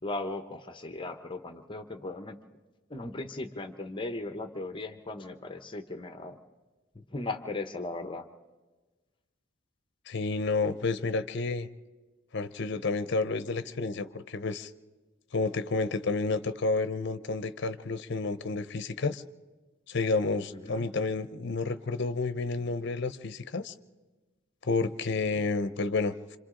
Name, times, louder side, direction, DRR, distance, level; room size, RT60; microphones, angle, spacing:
voice 1, 0.0-2.4 2.9-6.4 6.9-8.2 20.5-20.9, left 2 dB, 25° left, 8 dB, 0.8 m, -37 dB
voice 2, 10.1-11.7 12.3-14.7 15.3-19.2 19.9-23.7 24.6-26.4, left 3 dB, 60° left, 13 dB, 0.7 m, -30 dB
26.5 x 26.5 x 3.8 m, 1.2 s
head